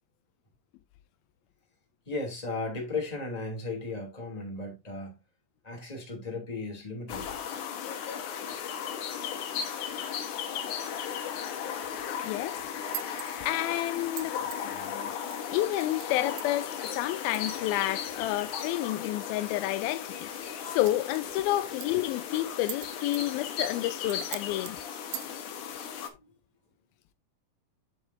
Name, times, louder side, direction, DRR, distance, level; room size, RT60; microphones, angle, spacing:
voice 1, 2.1-5.1 5.6-7.2, left 3 dB, 10° left, 2.5 m, -35 dB
sound 1, 7.1-26.1, left 8 dB, 65° left, 2.4 m, -36 dB
sound 2, 11.9-25.3, right 16 dB, 80° right, 2.3 m, -47 dB
voice 2, 12.2-12.6 13.4-15.1 15.5-24.8, left 15 dB, 85° left, 2.4 m, -30 dB
8.6 x 7.3 x 2.7 m
omnidirectional pair, 4.2 m